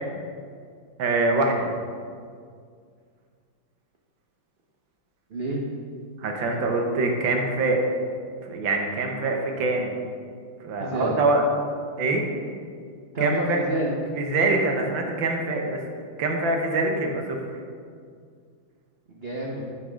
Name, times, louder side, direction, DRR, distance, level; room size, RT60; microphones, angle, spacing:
voice 1, 1.0-1.8 6.2-7.8 8.4-10.0 10.6-11.4 12.0-12.2 13.2-13.6 14.2-15.8 16.2-17.4, right 2 dB, 75° right, 2 dB, 1.8 m, -24 dB
voice 2, 5.3-5.6 10.8-11.2 13.1-13.9 19.1-19.6, right 1 dB, 45° right, -2 dB, 0.8 m, -29 dB
9.5 x 5.9 x 5.1 m, 2.2 s
omnidirectional pair, 2.2 m